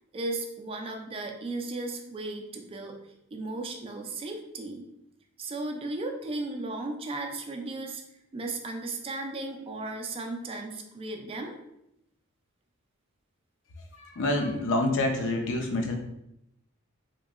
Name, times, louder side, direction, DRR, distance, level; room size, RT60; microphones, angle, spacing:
voice 1, 0.1-3.0 3.3-4.9 5.4-8.0 8.3-11.5, right 2 dB, 25° right, 2 dB, 0.3 m, -35 dB
voice 2, 13.9-16.0, left 2 dB, 60° left, 3 dB, 0.5 m, -27 dB
2.9 x 2.6 x 2.4 m, 0.82 s
head